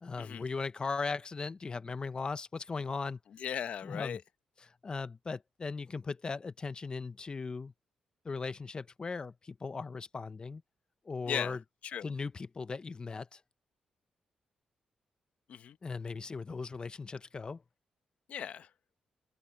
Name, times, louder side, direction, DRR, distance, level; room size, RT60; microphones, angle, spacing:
voice 1, 0.0-3.2 3.8-4.2 4.8-7.7 8.2-10.6 11.1-11.6 12.0-13.4 15.8-17.6, left 4 dB, 40° left, 1.0 m, -38 dB
voice 2, 3.3-4.2 11.2-12.1 15.5-15.8 18.3-18.7, left 9 dB, 70° left, 1.3 m, -38 dB
cardioid pair, 65°, 2 cm